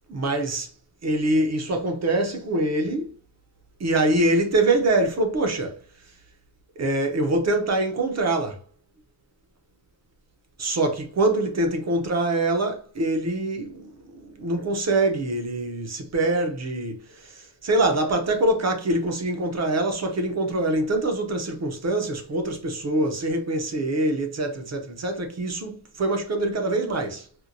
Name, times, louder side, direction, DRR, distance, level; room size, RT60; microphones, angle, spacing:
voice 1, 0.1-0.7 1.0-3.1 3.8-5.8 6.8-8.6 10.6-27.3, right 2 dB, 35° right, 0.6 m, -24 dB
4.3 x 2.2 x 2.5 m
wide cardioid pair, 170°, 45 cm